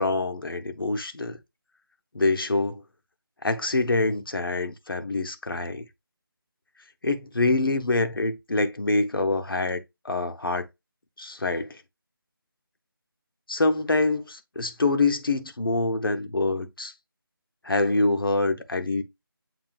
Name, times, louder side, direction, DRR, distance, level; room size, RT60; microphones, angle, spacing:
voice 1, 0.0-1.4 2.1-2.8 3.4-5.9 7.0-10.7 11.2-11.8 13.5-16.9 17.6-19.0, left 2 dB, 65° left, 0.9 m, -25 dB
7.8 x 2.7 x 2.4 m
figure-of-eight pair, 165°, 13 cm